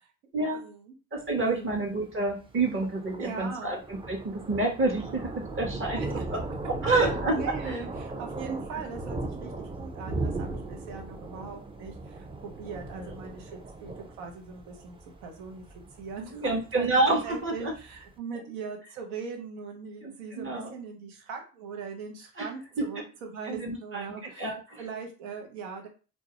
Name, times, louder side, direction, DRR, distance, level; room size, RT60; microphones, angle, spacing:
voice 1, 0.5-0.9 1.4-1.8 3.2-3.8 6.0-6.2 6.8-15.0 15.2-15.6 16.0-25.9, right 5 dB, 90° right, 3 dB, 0.6 m, -40 dB
voice 2, 1.1-6.0 6.8-7.8 16.3-17.7 20.0-20.7 22.4-22.5 23.5-24.0 24.4-24.8, right 2 dB, 35° right, 1 dB, 0.8 m, -28 dB
Thunder, 1.2-18.1, right 2 dB, 15° right, 0.4 m, -38 dB
2.2 x 2.0 x 2.8 m, 0.34 s
supercardioid pair, 60°, 35 cm